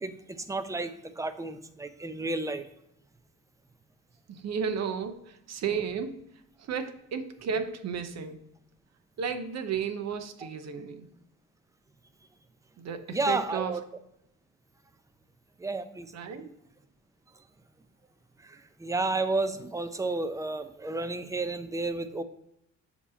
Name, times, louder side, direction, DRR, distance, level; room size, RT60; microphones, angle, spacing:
voice 1, 0.5-2.6 10.4-10.5 13.1-13.8 15.6-16.1 18.8-22.2, right 3 dB, 10° right, 0.5 m, -31 dB
voice 2, 4.3-6.4 6.7-8.5 9.2-11.1 12.8-13.7 16.1-16.5, right 6 dB, 60° right, 0.8 m, -33 dB
7.1 x 2.9 x 4.9 m
cardioid pair, 90°, 30 cm